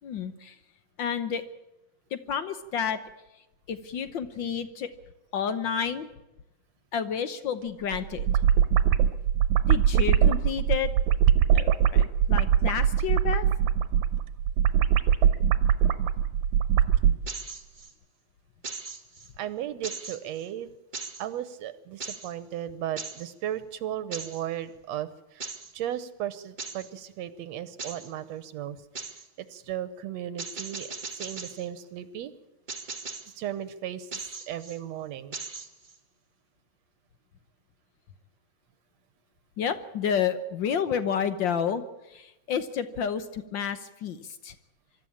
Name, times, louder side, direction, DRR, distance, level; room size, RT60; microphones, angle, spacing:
voice 1, 0.0-0.6 1.0-1.4 2.1-3.0 3.7-4.9 5.3-6.1 6.9-8.3 9.7-10.9 11.5-13.5 39.6-41.8 42.1-44.5, left 7 dB, 75° left, 11 dB, 1.0 m, -30 dB
sound 1, 7.9-17.2, right 9 dB, 90° right, 2.3 m, -22 dB
sound 2, 17.3-17.9 18.6-19.3 19.8-20.5 20.9-21.3 22.0-22.3 23.0-23.3 24.1-24.5 25.4-25.7 26.6-26.9 27.8-28.1 29.0-29.3 30.4-31.7 32.7-33.4 34.1-34.8 35.3-36.0, right 4 dB, 35° right, 0.7 m, -39 dB
voice 2, 19.4-20.7 21.2-32.3 33.4-35.4, right 11 dB, 70° right, 13 dB, 2.0 m, -36 dB
25.0 x 13.5 x 8.6 m, 0.97 s
omnidirectional pair, 3.3 m